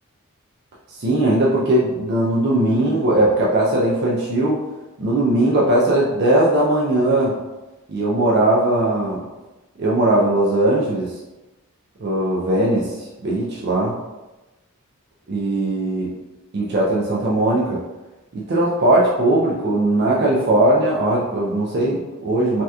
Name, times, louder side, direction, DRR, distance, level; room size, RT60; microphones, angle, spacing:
voice 1, 0.9-4.6 5.0-7.3 7.9-9.2 9.8-11.1 12.0-13.9 15.3-16.1 16.5-17.8 18.3-22.6, right 1 dB, 45° right, -4 dB, 0.4 m, -19 dB
3.3 x 2.8 x 2.3 m, 1.1 s
head